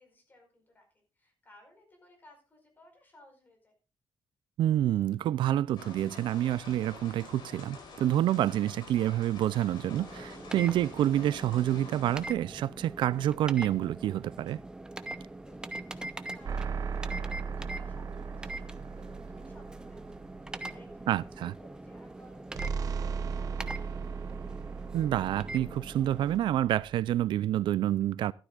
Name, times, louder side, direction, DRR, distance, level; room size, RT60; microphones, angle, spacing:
voice 1, 0.0-3.7 15.1-24.2, left 1 dB, 25° left, 5.0 m, -59 dB
voice 2, 4.6-14.6 21.1-21.5 24.9-28.3, right 12 dB, 80° right, 0.4 m, -28 dB
sound 1, 5.8-12.3, left 4 dB, 70° left, 4.6 m, -48 dB
sound 2, 9.9-26.4, right 2 dB, 10° right, 0.8 m, -43 dB
sound 3, 16.5-21.0 22.6-27.3, right 5 dB, 45° right, 0.9 m, -37 dB
15.0 x 13.0 x 2.4 m
wide cardioid pair, 170°, 8 cm